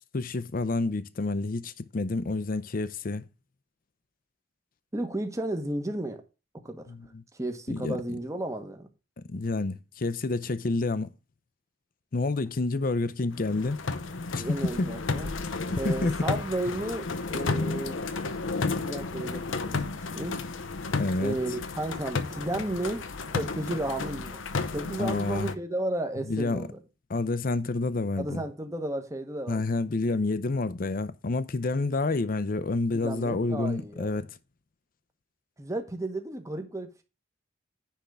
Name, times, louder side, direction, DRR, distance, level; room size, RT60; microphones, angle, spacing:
voice 1, 0.1-3.3 6.9-7.2 7.7-8.0 9.3-11.1 12.1-13.8 14.3-14.9 15.7-16.2 20.9-21.4 25.0-25.5 26.3-26.7 27.1-28.4 29.5-34.3, left 3 dB, 45° left, 0.6 m, -29 dB
voice 2, 4.9-6.2 6.6-6.9 7.4-8.9 14.4-15.4 15.8-18.1 18.5-20.4 21.2-23.0 23.3-24.4 24.7-26.8 28.2-29.6 32.9-34.3 35.6-37.0, right 1 dB, 15° right, 1.1 m, -33 dB
sound 1, 13.3-25.6, left 3 dB, 90° left, 0.8 m, -32 dB
10.0 x 3.6 x 6.7 m
head